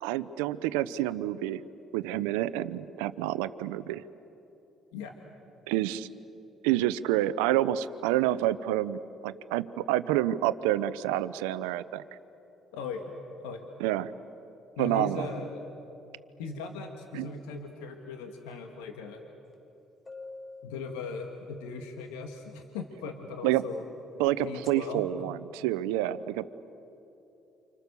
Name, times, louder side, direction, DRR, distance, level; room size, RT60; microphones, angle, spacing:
voice 1, 0.0-1.6 1.9-4.0 5.7-6.1 6.6-12.0 13.8-14.1 14.8-15.3 17.1-17.3 23.4-23.6 24.2-26.5, right 13 dB, 90° right, 14 dB, 0.7 m, -28 dB
voice 2, 12.7-13.1 13.4-13.7 14.8-15.6 16.4-19.2 20.6-23.9 24.4-25.0, left 4 dB, 90° left, 3 dB, 1.9 m, -38 dB
sound 1, 19.5-19.6 20.1-21.8 24.4-24.7, left 3 dB, 35° left, 7.0 m, -46 dB
29.5 x 26.5 x 6.9 m, 3.0 s
supercardioid pair, 65°, 0 cm